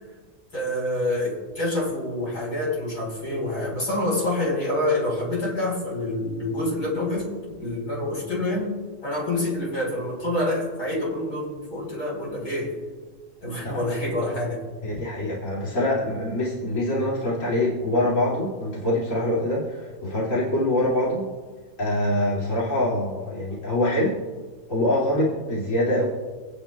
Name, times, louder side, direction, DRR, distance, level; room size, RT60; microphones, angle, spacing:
voice 1, 0.5-7.3 7.6-8.7 9.0-12.8 13.4-14.6, left 1 dB, 80° left, -4 dB, 4.7 m, -27 dB
voice 2, 14.8-21.2 21.8-24.2 24.7-26.0, left 1 dB, 55° left, -7 dB, 2.8 m, -24 dB
26.5 x 9.1 x 2.3 m, 1.4 s
omnidirectional pair, 1.6 m